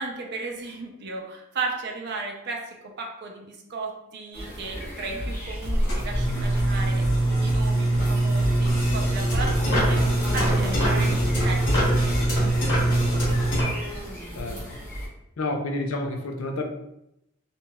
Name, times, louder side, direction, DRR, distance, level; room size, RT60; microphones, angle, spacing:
voice 1, 0.0-10.0 10.3-13.4, right 3 dB, 55° right, 1 dB, 0.5 m, -35 dB
sound 1, 4.3-15.1, equal, 10° left, 1.1 m, -36 dB
sound 2, 5.2-12.4, left 1 dB, 20° right, 1.4 m, -32 dB
sound 3, 5.7-13.6, right 1 dB, 55° left, 1.3 m, -23 dB
voice 2, 15.4-16.6, left 2 dB, 75° left, 3 dB, 0.5 m, -29 dB
3.0 x 2.9 x 2.3 m, 0.83 s
head